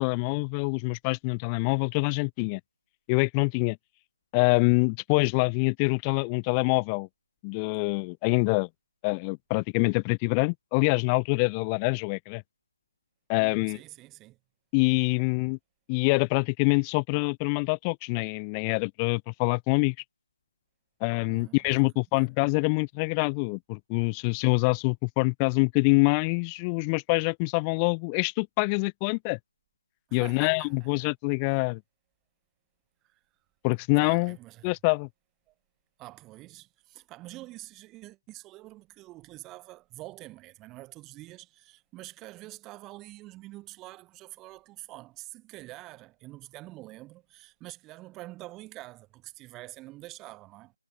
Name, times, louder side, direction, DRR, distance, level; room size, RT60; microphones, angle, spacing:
voice 1, 0.0-2.6 3.1-3.8 4.3-7.1 7.4-8.7 9.0-12.4 13.3-13.8 14.7-15.6 15.9-19.9 21.0-29.4 30.1-31.8 33.6-34.4 34.6-35.1, left 35 dB, 10° left, 0.4 m, -25 dB
voice 2, 13.4-14.4 21.3-21.8 22.1-22.3 30.1-31.1 33.1-33.2 34.0-34.7 36.0-50.7, right 18 dB, 10° right, 4.9 m, -46 dB
figure-of-eight pair, 170°, 0 cm